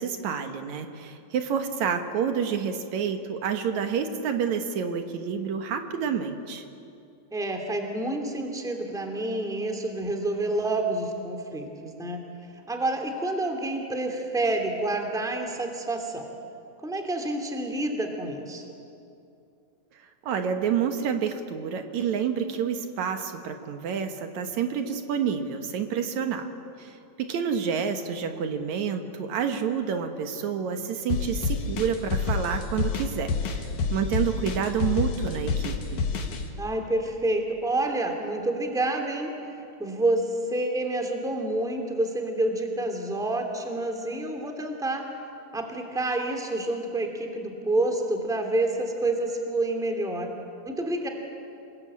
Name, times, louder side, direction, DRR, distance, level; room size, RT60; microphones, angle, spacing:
voice 1, 0.0-6.7 20.2-26.5 26.8-36.0, right 7 dB, 75° right, 6 dB, 2.6 m, -29 dB
voice 2, 7.3-12.2 12.7-16.2 16.8-18.6 36.6-39.3 39.8-45.0 45.5-50.3 50.6-51.1, right 2 dB, ahead, 4 dB, 2.2 m, -28 dB
sound 1, 31.1-36.4, left 5 dB, 85° left, 3.3 m, -28 dB
27.5 x 20.0 x 8.6 m, 2.6 s
omnidirectional pair, 3.3 m